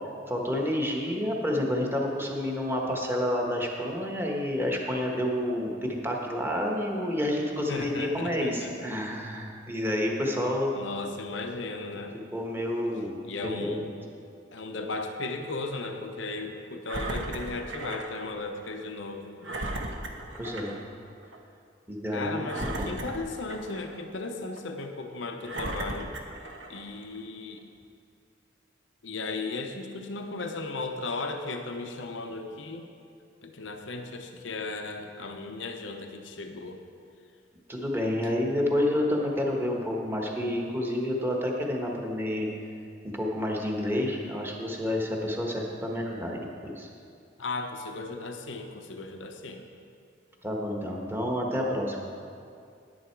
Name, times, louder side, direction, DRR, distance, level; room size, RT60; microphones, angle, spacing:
voice 1, 0.3-10.7 12.3-13.2 13.4-13.8 20.4-20.7 21.9-23.0 37.7-42.5 43.1-46.9 50.4-52.1, left 1 dB, 10° right, 0 dB, 1.3 m, -29 dB
voice 2, 7.7-8.7 10.7-12.2 13.3-13.9 14.5-19.6 22.1-26.1 26.7-27.6 29.0-32.9 33.4-36.8 47.4-49.7, left 3 dB, 75° left, 5 dB, 0.7 m, -36 dB
Engine, 16.9-18.1 18.6-18.7 19.4-20.8 21.2-21.4 22.4-24.0 24.6-24.7 25.4-26.9 27.6-27.7, right 1 dB, 80° right, 1.0 m, -36 dB
10.5 x 10.0 x 4.6 m, 2.4 s
head